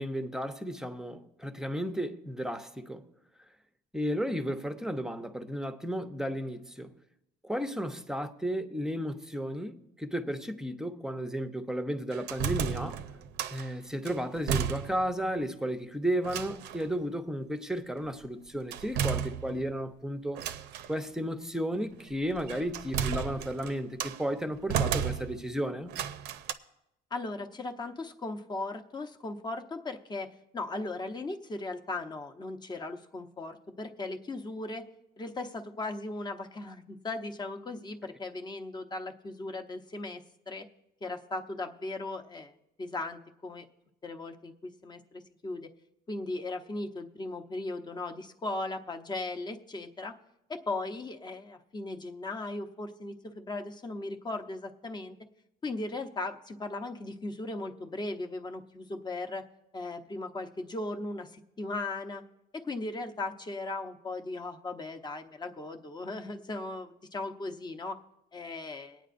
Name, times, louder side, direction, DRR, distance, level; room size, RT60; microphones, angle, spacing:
voice 1, 0.0-3.0 3.9-6.9 7.4-13.0 13.5-20.4 20.9-25.9, equal, 5° right, 0.7 m, -33 dB
sound 1, 12.1-13.7 14.0-15.2 15.5-15.6 16.2-16.9 18.7-19.8 20.3-20.9 22.1-24.2 24.7-25.5 25.9-26.5, right 8 dB, 85° right, 0.6 m, -33 dB
voice 2, 27.1-30.3 30.5-34.8 35.2-40.6 41.0-42.5 42.8-43.7 44.0-45.7 46.1-50.1 50.5-55.2 55.6-59.4 59.7-62.2 62.5-68.0 68.3-69.0, left 2 dB, 25° left, 0.8 m, -37 dB
22.5 x 9.1 x 2.5 m
cardioid pair, 110°, 17 cm